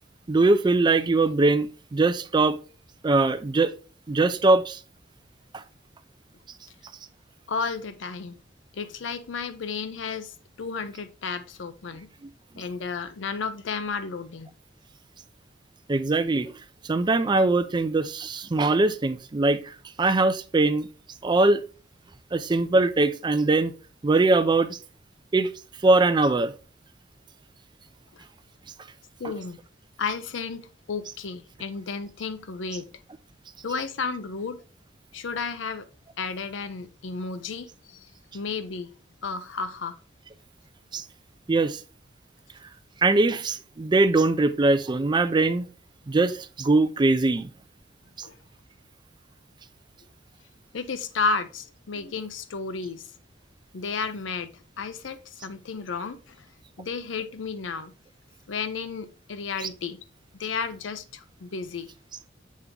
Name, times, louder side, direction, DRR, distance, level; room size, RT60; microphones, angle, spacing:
voice 1, 0.3-2.6 3.0-3.7 4.1-4.8 5.5-5.6 15.9-16.5 16.8-20.9 21.2-21.6 22.3-23.7 24.0-24.8 25.3-25.5 25.8-26.5 40.9-41.0 41.5-41.8 43.0-45.7 46.1-47.5 59.6-59.7, right 3 dB, 25° right, 0.4 m, -22 dB
voice 2, 7.5-8.4 8.7-12.1 12.6-14.5 28.2-28.3 29.2-29.6 30.0-32.9 33.6-34.6 35.1-35.9 36.2-38.9 39.2-40.0 48.2-48.3 50.7-53.1 53.7-56.5 56.8-57.9 58.5-60.0 60.4-61.9, left 5 dB, 90° left, 0.5 m, -32 dB
7.3 x 3.4 x 3.7 m
head